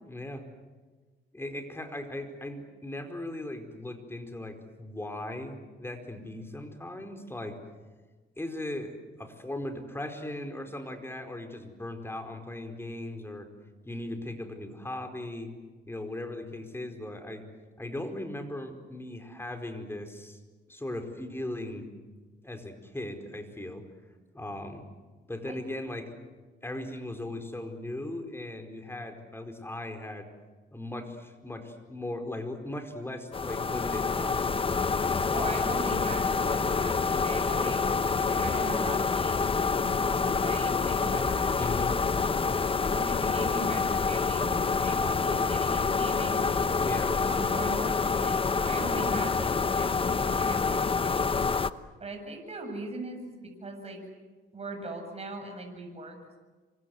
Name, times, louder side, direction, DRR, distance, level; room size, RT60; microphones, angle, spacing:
voice 1, 0.0-0.4 1.3-7.6 8.4-8.9 9.2-13.5 13.8-15.5 15.9-17.4 17.8-20.4 20.7-21.9 22.4-23.8 24.3-24.8 25.3-26.1 26.6-30.3 30.7-34.9 35.3-35.7 41.5-42.0 46.8-47.1, left 1 dB, 10° left, 6 dB, 4.7 m, -38 dB
sound 1, 33.3-51.7, left 4 dB, 25° left, 1.0 m, -27 dB
voice 2, 35.3-37.8 38.3-39.5 39.8-41.5 42.8-46.5 47.2-48.4 48.6-51.2 52.0-54.0 54.5-56.4, right 2 dB, 30° right, 3 dB, 7.9 m, -40 dB
28.0 x 25.0 x 8.0 m, 1.3 s
cardioid pair, 90°, 20 cm